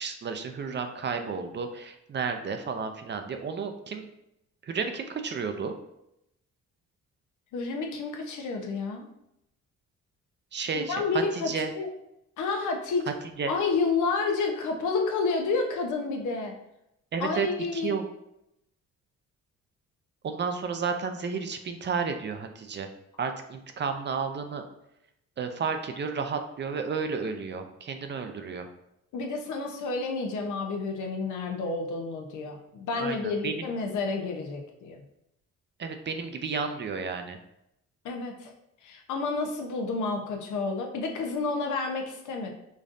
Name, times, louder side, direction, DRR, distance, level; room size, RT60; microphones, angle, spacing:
voice 1, 0.0-4.1 4.6-5.7 10.5-11.7 13.4-13.5 17.1-17.5 17.7-18.0 20.2-22.9 23.2-24.6 25.4-28.7 32.9-33.2 33.4-33.7 35.8-37.4, right 5 dB, 40° right, 6 dB, 0.5 m, -32 dB
voice 2, 7.5-9.1 10.7-11.5 11.7-11.9 12.4-13.1 13.5-16.5 17.2-18.0 29.1-35.0 38.0-38.5 38.8-42.5, left 4 dB, 75° left, 2 dB, 0.8 m, -30 dB
5.1 x 2.6 x 2.5 m, 0.81 s
cardioid pair, 90°, 30 cm